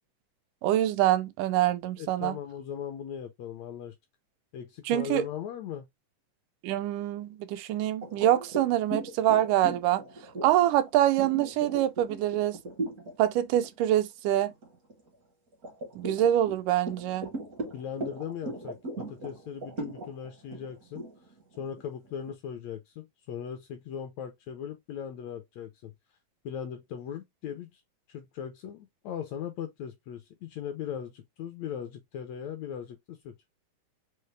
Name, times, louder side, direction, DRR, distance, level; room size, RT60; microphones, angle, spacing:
voice 1, 0.6-2.4 4.9-5.2 6.6-10.0 10.4-12.6 13.2-14.5 16.0-17.3, right 12 dB, 85° right, 2.1 m, -25 dB
voice 2, 2.0-3.9 4.5-5.9 17.7-21.1 21.6-25.9 26.4-27.8 28.1-33.4, left 8 dB, 75° left, 1.6 m, -39 dB
sound 1, 8.0-13.1 13.6-13.8 14.3-15.1 15.6-22.3, right 2 dB, 65° right, 0.8 m, -38 dB
5.6 x 2.0 x 3.1 m
omnidirectional pair, 3.6 m